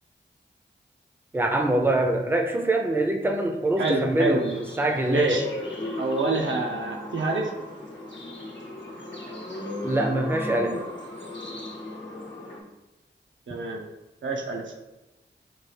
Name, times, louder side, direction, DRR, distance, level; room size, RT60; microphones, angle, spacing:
voice 1, 1.3-5.5 9.8-10.8, right 1 dB, 10° right, 3 dB, 0.4 m, -24 dB
voice 2, 3.8-4.4 5.1-5.4 6.0-7.5 13.5-13.8 14.2-14.7, right 2 dB, 80° right, 1 dB, 0.6 m, -27 dB
sound 1, 3.9-12.6, left 1 dB, 70° left, 0.8 m, -36 dB
4.5 x 2.3 x 3.2 m, 1.0 s
cardioid pair, 50°, 19 cm